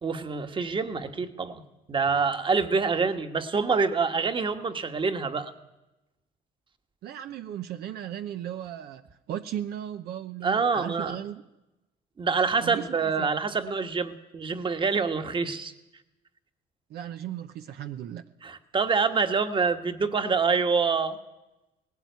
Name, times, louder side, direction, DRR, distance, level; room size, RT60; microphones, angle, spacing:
voice 1, 0.0-1.6 1.9-5.5 10.4-11.2 12.2-15.7 18.4-21.2, right 5 dB, 30° right, 8 dB, 1.5 m, -26 dB
voice 2, 7.0-11.4 12.6-13.3 16.9-18.2, right 10 dB, 70° right, 8 dB, 0.9 m, -36 dB
18.5 x 16.5 x 9.4 m, 0.98 s
cardioid pair, 110°, 17 cm